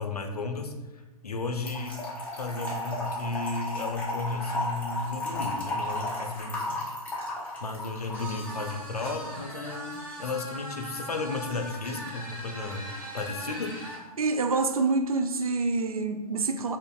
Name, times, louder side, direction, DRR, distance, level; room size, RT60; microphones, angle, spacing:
voice 1, 0.0-2.0 2.3-6.8 7.6-13.8, left 3 dB, 80° left, 5 dB, 0.5 m, -34 dB
Trickle dribble / Fill (with liquid), 1.7-8.7, left 1 dB, 5° left, 0.5 m, -34 dB
sound 1, 8.1-14.0, right 1 dB, 10° right, 1.0 m, -39 dB
voice 2, 14.2-16.8, right 3 dB, 65° right, 7 dB, 0.4 m, -26 dB
3.6 x 2.5 x 2.4 m, 1.1 s
figure-of-eight pair, 125°, 19 cm